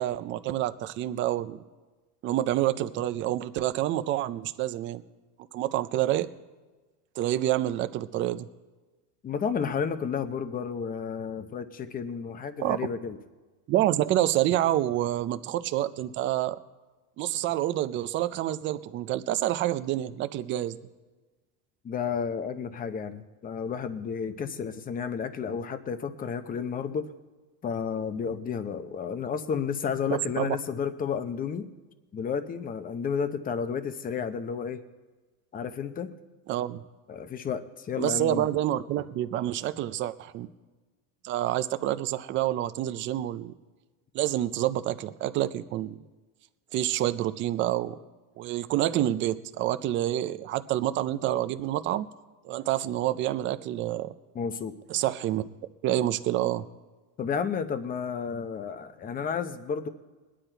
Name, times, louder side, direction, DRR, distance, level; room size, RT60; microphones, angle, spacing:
voice 1, 0.0-1.6 2.2-5.0 5.5-6.3 7.2-8.5 12.6-12.8 13.7-16.6 17.2-20.8 30.1-30.6 36.5-36.8 38.0-40.5 41.2-43.5 44.1-46.0 46.7-48.0 48.4-52.1 52.4-54.1 54.9-55.4 55.8-56.6, right 13 dB, 25° right, 12 dB, 0.4 m, -28 dB
voice 2, 9.2-13.2 21.8-27.1 27.6-31.6 32.1-34.8 35.5-36.1 37.1-38.5 54.3-54.8 57.2-59.9, left 6 dB, 20° left, 10 dB, 0.7 m, -32 dB
20.5 x 10.0 x 4.4 m, 1.3 s
supercardioid pair, 135°, 48 cm